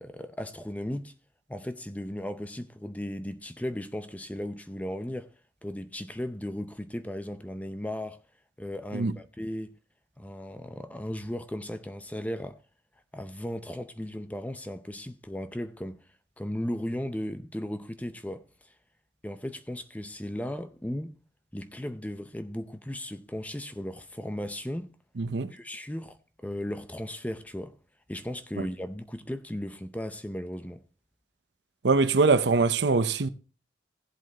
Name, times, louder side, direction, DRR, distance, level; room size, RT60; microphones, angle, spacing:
voice 1, 0.0-1.1 1.5-5.3 5.6-8.2 8.6-9.8 10.2-12.6 13.1-16.0 16.4-18.5 19.2-21.2 21.5-24.9 25.5-27.8 28.1-30.8, left 1 dB, 10° left, 0.6 m, -36 dB
voice 2, 25.2-25.5 31.8-33.3, right 4 dB, 75° right, 0.7 m, -23 dB
17.0 x 7.7 x 2.9 m
head